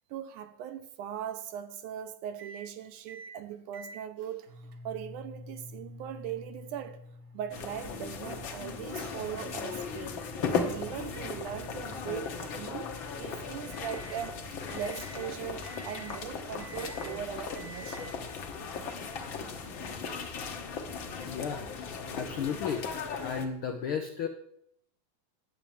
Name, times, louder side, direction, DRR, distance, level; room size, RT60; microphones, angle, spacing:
voice 1, 0.1-7.1 7.3-10.2 10.6-18.1, right 10 dB, 75° right, 2.3 m, -40 dB
sound 1, 2.4-2.7 3.1-3.4 3.7-14.3 14.7-15.2 15.6-16.2 16.6-17.1 17.5-18.1, equal, 55° right, 1.6 m, -49 dB
sound 2, 7.5-23.5, left 5 dB, 55° left, 1.4 m, -37 dB
voice 2, 21.2-22.8 23.2-24.3, left 7 dB, 90° left, 1.1 m, -34 dB
10.5 x 7.9 x 7.1 m
omnidirectional pair, 3.8 m